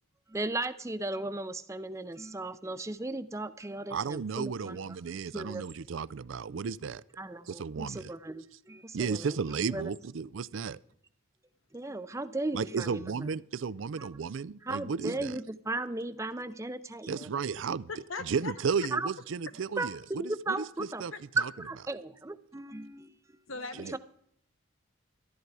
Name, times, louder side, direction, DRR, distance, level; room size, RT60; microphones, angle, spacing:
voice 1, 0.3-5.0 5.3-5.6 7.2-9.4 9.7-9.9 11.7-13.0 14.0-14.1 14.6-17.3 18.9-19.1 19.8-21.0 21.6-23.1 23.9-24.0, right 2 dB, 15° right, 13 dB, 0.5 m, -36 dB
voice 2, 3.9-7.0 7.5-8.1 8.9-10.8 12.5-15.4 17.1-17.9 18.2-21.1 23.8-24.0, right 5 dB, 70° right, 19 dB, 0.4 m, -34 dB
voice 3, 17.9-18.5 21.1-21.2 23.5-24.0, left 3 dB, 75° left, 9 dB, 1.2 m, -39 dB
13.5 x 11.5 x 4.8 m, 0.67 s
head